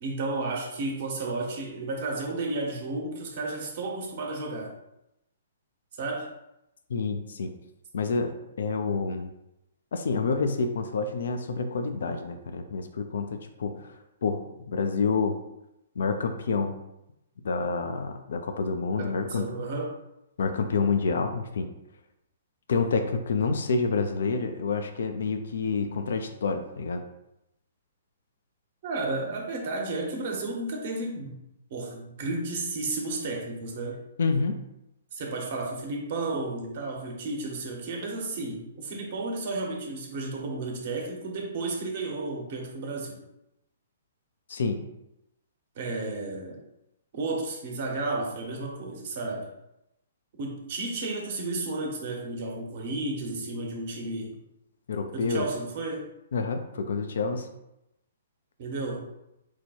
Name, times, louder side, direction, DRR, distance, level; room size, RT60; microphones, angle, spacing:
voice 1, 0.0-4.7 6.0-6.3 19.0-19.9 28.8-31.3 31.7-34.0 35.1-43.2 45.8-46.6 47.1-49.5 50.3-54.4 55.1-56.1 58.6-59.1, right 2 dB, 55° right, 1 dB, 1.1 m, -32 dB
voice 2, 6.9-7.5 7.9-9.3 9.9-13.7 14.2-14.4 14.7-15.4 16.0-16.8 17.4-19.7 20.4-21.7 22.7-27.0 34.2-34.6 44.5-44.8 54.9-55.4 56.3-57.5, left 4 dB, 70° left, 7 dB, 0.5 m, -28 dB
4.5 x 2.3 x 4.3 m, 0.87 s
hypercardioid pair, 130°, 0 cm